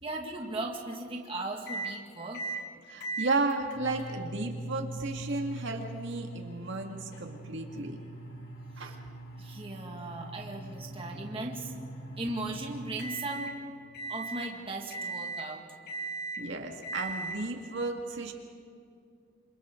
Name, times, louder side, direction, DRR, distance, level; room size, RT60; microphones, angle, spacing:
voice 1, 0.0-2.4 8.8-9.0 9.4-11.7 12.2-13.5 14.1-15.6, right 2 dB, 25° right, 0 dB, 1.9 m, -37 dB
sound 1, 1.7-1.9 2.3-2.6 3.0-13.5 13.9-14.5 14.9-15.5 15.9-16.4 16.8-17.4, right 3 dB, 55° left, 2.8 m, -40 dB
voice 2, 2.9-8.0 8.8-9.0 16.4-18.3, right 3 dB, 60° right, 2 dB, 2.0 m, -33 dB
28.0 x 27.5 x 3.8 m, 2.5 s
head